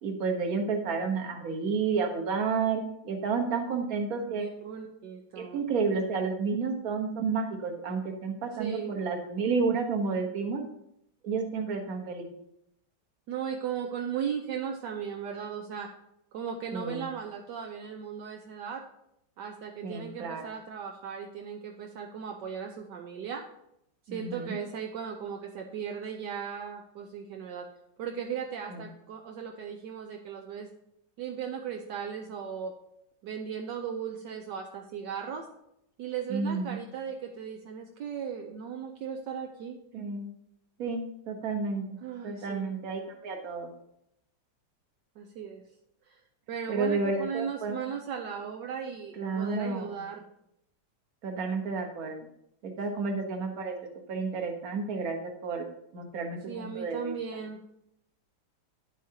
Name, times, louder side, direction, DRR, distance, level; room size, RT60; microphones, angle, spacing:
voice 1, 0.0-4.5 5.3-10.6 11.2-12.3 16.7-17.1 19.8-20.4 24.1-24.6 28.7-28.9 36.3-36.8 39.9-40.3 40.8-42.0 42.2-43.7 46.7-47.8 49.1-50.1 51.2-52.3 52.6-53.7 54.1-55.7 55.9-57.1, right 4 dB, 55° right, 3 dB, 1.6 m, -31 dB
voice 2, 4.3-5.6 8.6-8.9 13.3-15.9 16.3-18.8 19.4-23.4 24.1-27.7 28.0-30.7 31.2-32.7 33.2-35.5 36.0-39.8 42.0-42.7 45.2-45.6 46.1-46.2 46.5-50.2 52.9-53.1 56.5-57.6, right 7 dB, 75° right, 3 dB, 1.3 m, -37 dB
9.9 x 8.5 x 2.9 m, 0.78 s
omnidirectional pair, 2.0 m